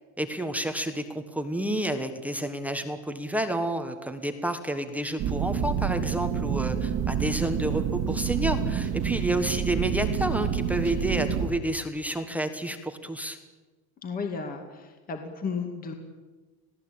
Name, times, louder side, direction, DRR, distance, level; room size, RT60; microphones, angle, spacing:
voice 1, 0.2-13.4, right 1 dB, 5° right, 7 dB, 1.3 m, -30 dB
sound 1, 5.2-11.5, right 7 dB, 40° right, 1.9 m, -28 dB
voice 2, 14.0-15.9, left 5 dB, 25° left, 4 dB, 2.3 m, -34 dB
27.0 x 17.5 x 8.7 m, 1.3 s
cardioid pair, 170°, 38 cm